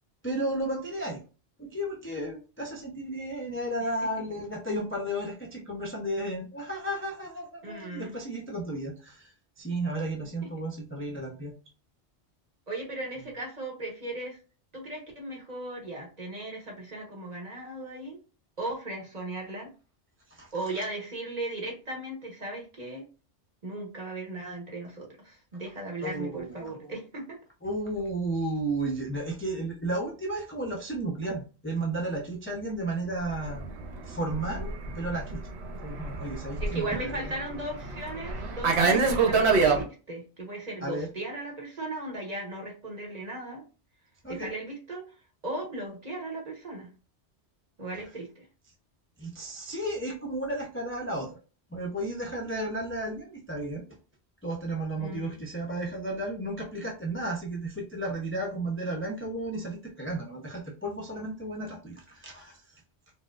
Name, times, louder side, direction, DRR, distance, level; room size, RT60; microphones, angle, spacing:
voice 1, 0.2-1.2 1.6-11.5 20.3-20.5 26.0-26.7 27.6-33.7 34.0-35.5 35.8-37.1 40.8-41.1 44.2-44.5 49.2-51.4 51.7-53.8 54.4-62.8, right 1 dB, 15° left, -1 dB, 0.5 m, -33 dB
voice 2, 7.6-8.2 12.7-14.4 14.7-18.2 18.6-19.7 20.5-23.0 23.6-27.4 34.4-34.6 36.6-43.6 44.3-45.1 45.4-46.9 47.8-48.5 55.0-55.4, right 2 dB, 40° right, -1 dB, 1.0 m, -37 dB
Fixed-wing aircraft airplane, 33.3-39.8, right 4 dB, 70° right, 0.9 m, -27 dB
4.2 x 2.1 x 2.4 m, 0.34 s
omnidirectional pair, 1.2 m